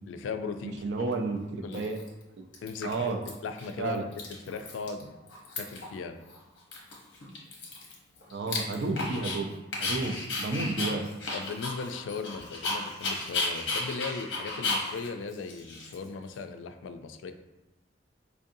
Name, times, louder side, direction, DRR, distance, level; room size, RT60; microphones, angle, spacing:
voice 1, 0.1-0.8 1.6-1.8 2.6-3.1 3.4-5.1 5.6-6.2 9.9-10.0 11.3-17.3, left 4 dB, 90° left, 8 dB, 0.3 m, -38 dB
voice 2, 0.6-2.0 2.8-3.2 3.8-4.1 8.3-9.5 9.8-11.1, right 3 dB, 70° right, 4 dB, 0.4 m, -31 dB
Dog, 1.0-1.1 1.7-2.2 2.5-3.3 3.6-3.7 4.0-5.0 5.3-5.9 6.3-6.4 6.7-9.4 9.7-16.3, left 3 dB, 70° left, 0.8 m, -34 dB
4.4 x 2.5 x 2.6 m, 1.0 s
head